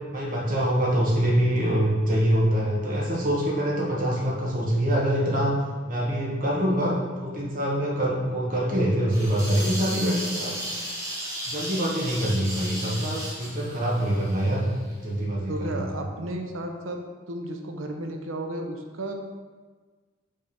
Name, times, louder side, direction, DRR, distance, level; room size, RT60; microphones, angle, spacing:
voice 1, 0.1-5.5 5.9-10.7 11.5-14.6 14.9-15.9, equal, 40° right, -3 dB, 1.1 m, -25 dB
sound 1, 9.1-14.9, right 1 dB, 15° right, 0.8 m, -34 dB
voice 2, 15.5-19.1, right 1 dB, 85° right, 3 dB, 0.7 m, -33 dB
5.5 x 3.4 x 5.2 m, 1.4 s
head